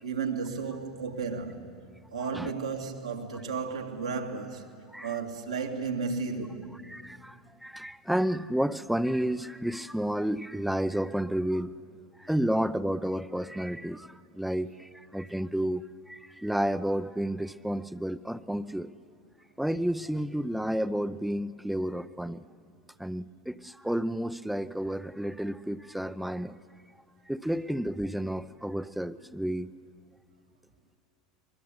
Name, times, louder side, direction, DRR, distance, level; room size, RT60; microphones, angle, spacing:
voice 1, 0.0-1.7 2.1-4.6 5.0-6.7, right 5 dB, 85° right, 2.2 m, -33 dB
voice 2, 6.9-11.8 12.2-18.9 19.6-22.4 23.0-26.6 27.3-29.8, right 1 dB, ahead, 0.6 m, -31 dB
22.5 x 22.5 x 9.7 m
hypercardioid pair, 80°, 3 cm